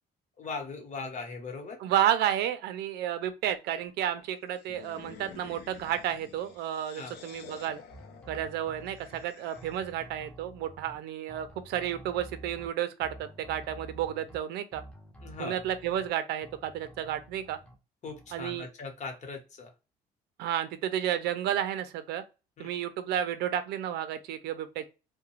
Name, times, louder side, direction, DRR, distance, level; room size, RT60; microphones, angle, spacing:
voice 1, 0.4-1.8 7.0-7.1 15.2-15.6 18.0-19.7 22.6-22.7, left 4 dB, 45° left, 0.9 m, -39 dB
voice 2, 1.8-7.8 8.3-14.8 15.4-17.6 18.3-18.7 20.4-22.2 22.6-24.9, right 10 dB, 80° right, 0.5 m, -31 dB
sound 1, 4.5-10.0, left 6 dB, 75° left, 0.6 m, -50 dB
sound 2, 7.9-9.2 9.5-11.0 11.3-12.7 13.0-14.4 14.7-16.1 16.4-17.7 18.1-18.6, right 1 dB, 5° left, 0.6 m, -49 dB
2.3 x 2.2 x 3.0 m
cardioid pair, 110°, 17 cm